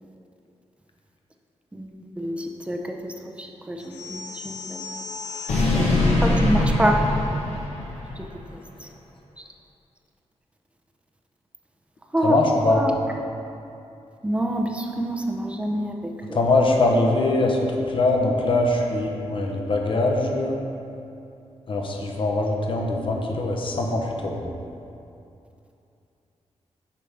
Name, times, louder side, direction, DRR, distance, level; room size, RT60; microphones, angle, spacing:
voice 1, 1.7-4.8 6.2-7.0 8.2-8.3 8.8-8.9 12.1-12.4 12.7-12.9 14.2-16.0 16.3-16.4, right 1 dB, 10° right, 2 dB, 0.6 m, -27 dB
sound 1, 3.9-8.2, left 2 dB, 90° left, 1.3 m, -24 dB
voice 2, 12.2-12.8 16.3-17.6 17.9-20.6 21.7-24.5, left 2 dB, 50° left, 1 dB, 0.8 m, -22 dB
8.4 x 5.7 x 3.4 m, 2.7 s
wide cardioid pair, 145°, 11 cm